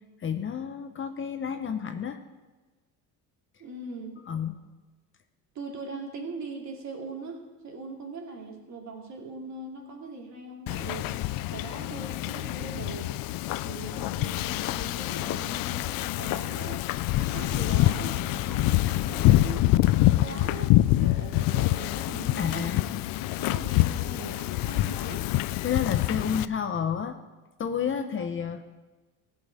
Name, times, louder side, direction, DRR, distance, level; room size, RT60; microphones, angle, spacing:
voice 1, 0.2-2.2 4.3-4.6 22.4-22.9 25.6-27.2 27.6-28.6, left 7 dB, 30° left, 8 dB, 0.7 m, -30 dB
voice 2, 3.6-4.2 5.5-11.2 11.5-13.1 13.6-16.9 17.2-19.6 20.0-23.0 23.4-25.3 27.8-28.3, right 3 dB, 45° right, 1 dB, 2.7 m, -41 dB
Wind / Ocean, 10.7-26.4, left 16 dB, 65° left, 0.5 m, -26 dB
15.5 x 5.6 x 7.8 m, 1.2 s
cardioid pair, 120°, 38 cm